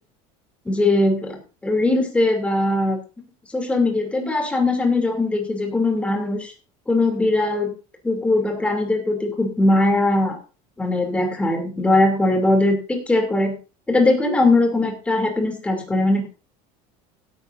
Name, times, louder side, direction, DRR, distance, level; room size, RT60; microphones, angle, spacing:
voice 1, 0.6-1.4 1.6-3.0 3.5-6.5 6.9-7.7 8.0-10.4 10.8-13.5 13.9-16.3, left 2 dB, 10° left, 2 dB, 2.9 m, -20 dB
16.0 x 11.5 x 2.6 m, 0.33 s
cardioid pair, 160°, 16 cm